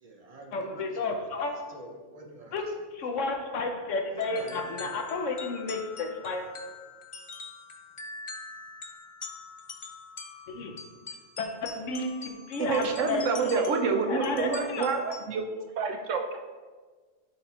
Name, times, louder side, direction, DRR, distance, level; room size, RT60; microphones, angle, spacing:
voice 1, 0.0-1.3 1.7-2.6 4.1-5.5, right 2 dB, 35° right, 1 dB, 0.8 m, -46 dB
voice 2, 0.5-1.5 2.5-2.6 2.9-6.4 10.5-10.7 11.4-13.7 14.1-14.9, left 3 dB, 85° left, 3 dB, 1.2 m, -32 dB
sound 1, 4.2-15.2, left 4 dB, 40° left, 0.5 m, -44 dB
voice 3, 12.6-15.5 15.8-16.4, right 5 dB, 90° right, 4 dB, 1.1 m, -28 dB
11.5 x 4.2 x 2.9 m, 1.4 s
omnidirectional pair, 1.2 m